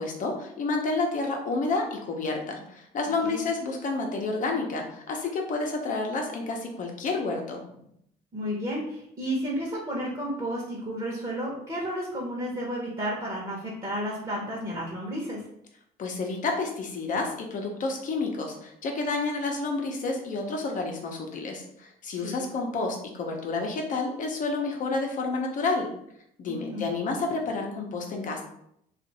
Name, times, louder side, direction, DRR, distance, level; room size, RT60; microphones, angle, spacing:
voice 1, 0.0-7.7 16.0-25.9 26.4-28.4, left 3 dB, 50° left, 2 dB, 0.8 m, -30 dB
voice 2, 8.3-15.4 22.1-22.4 26.5-26.9, equal, 30° right, -4 dB, 1.0 m, -32 dB
2.6 x 2.5 x 4.0 m, 0.74 s
cardioid pair, 110°, 17 cm